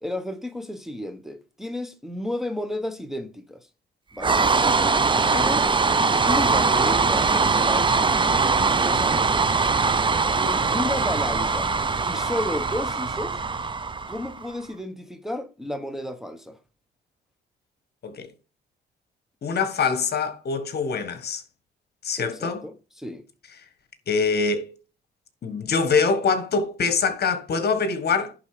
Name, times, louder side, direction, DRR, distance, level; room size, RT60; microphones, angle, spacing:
voice 1, 0.0-3.7 4.1-4.4 5.3-5.7 6.3-8.1 8.7-9.4 10.4-11.7 12.0-13.4 14.1-16.6 22.2-23.2, left 1 dB, ahead, 1.2 m, -32 dB
sound 1, 4.2-14.5, right 4 dB, 25° right, 0.8 m, -22 dB
voice 2, 19.4-21.4 22.0-22.6 24.1-24.8 25.4-28.3, left 5 dB, 55° left, 1.7 m, -24 dB
11.0 x 4.0 x 5.0 m
cardioid pair, 90°, 20 cm